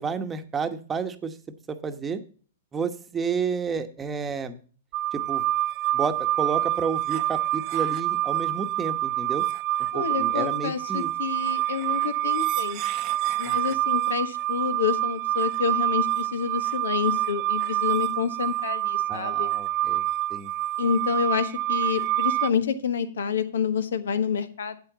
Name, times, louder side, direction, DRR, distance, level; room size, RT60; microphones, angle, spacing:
voice 1, 0.0-1.3 1.7-2.2 2.7-4.6 5.1-5.4 5.9-9.4 9.9-11.1 13.5-13.6 19.1-20.0 20.3-20.5, right 5 dB, 15° right, 8 dB, 1.0 m, -31 dB
sound 1, 4.9-22.5, right 14 dB, 40° right, 0.7 m, -27 dB
voice 2, 9.9-12.8 13.4-19.5 20.8-24.8, left 7 dB, 80° left, 10 dB, 1.3 m, -28 dB
8.9 x 8.1 x 3.9 m, 0.40 s
hypercardioid pair, 125°, 0 cm